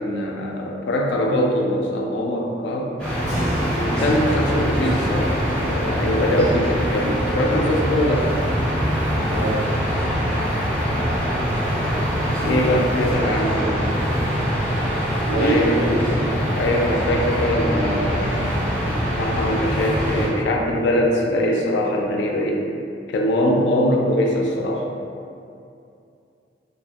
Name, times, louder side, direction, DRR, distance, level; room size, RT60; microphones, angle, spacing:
voice 1, 0.0-2.9 3.8-8.3 12.4-13.6 15.4-15.9 16.6-18.4 18.9-22.6 23.1-24.8, left 1 dB, 75° left, 0 dB, 0.3 m, -22 dB
sound 1, 3.0-20.3, equal, 5° left, 0.8 m, -23 dB
Keyboard (musical), 3.3-13.6, right 1 dB, 20° right, 0.9 m, -39 dB
voice 2, 9.3-9.6 13.1-13.8 15.3-16.3, right 2 dB, 50° right, -2 dB, 0.4 m, -25 dB
2.9 x 2.5 x 2.2 m, 2.5 s
head